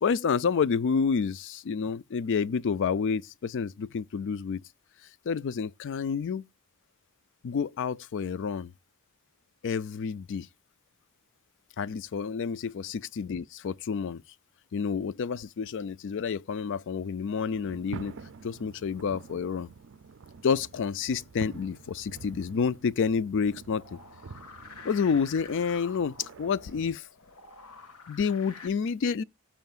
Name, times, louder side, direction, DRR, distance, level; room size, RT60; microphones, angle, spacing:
voice 1, 0.0-4.6 5.3-6.4 7.4-8.7 9.6-10.5 11.8-14.2 14.7-18.2 18.4-19.7 20.4-24.0 24.8-27.0 28.1-29.2, left 6 dB, 55° left, 0.4 m, -29 dB
sound 1, 17.5-27.0, right 4 dB, 55° right, 0.5 m, -47 dB
sound 2, 23.7-28.7, left 4 dB, 85° left, 1.9 m, -49 dB
14.5 x 5.7 x 2.4 m
head